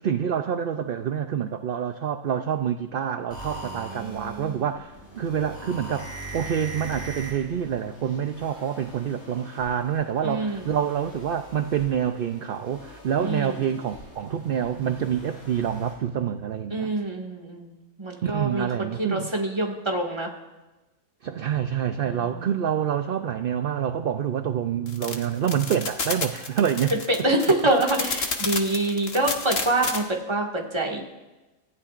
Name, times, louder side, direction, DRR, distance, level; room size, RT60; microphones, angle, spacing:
voice 1, 0.0-16.9 18.2-19.3 21.2-26.9, right 8 dB, 55° right, 8 dB, 0.6 m, -27 dB
sound 1, 3.3-15.9, right 1 dB, 90° left, 7.1 m, -42 dB
voice 2, 3.7-4.6 10.2-10.7 13.2-13.6 16.7-20.3 22.0-22.5 27.2-31.0, right 2 dB, 20° right, 0 dB, 1.9 m, -26 dB
sound 2, 24.9-30.0, left 4 dB, 45° left, 1.4 m, -30 dB
29.0 x 14.5 x 2.5 m, 1.1 s
omnidirectional pair, 1.4 m